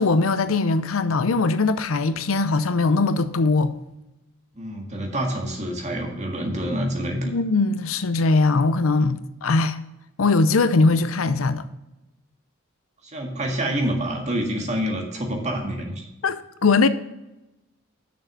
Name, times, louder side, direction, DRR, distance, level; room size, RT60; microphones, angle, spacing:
voice 1, 0.0-3.7 7.2-9.8 10.2-11.6 16.2-16.9, left 3 dB, 80° left, 0.6 m, -20 dB
voice 2, 4.6-7.3 13.0-16.1, equal, 35° right, 1.8 m, -27 dB
6.5 x 6.4 x 6.6 m
head